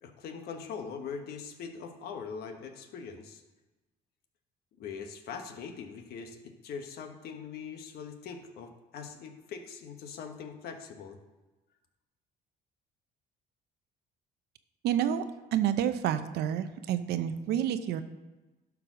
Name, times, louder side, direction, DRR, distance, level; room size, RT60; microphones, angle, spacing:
voice 1, 0.0-3.4 4.8-11.2, left 6 dB, 70° left, 5 dB, 1.3 m, -42 dB
voice 2, 14.8-15.2 15.5-18.0, right 10 dB, 75° right, 11 dB, 0.8 m, -29 dB
12.0 x 4.9 x 6.1 m, 1.1 s
cardioid pair, 110°, 17 cm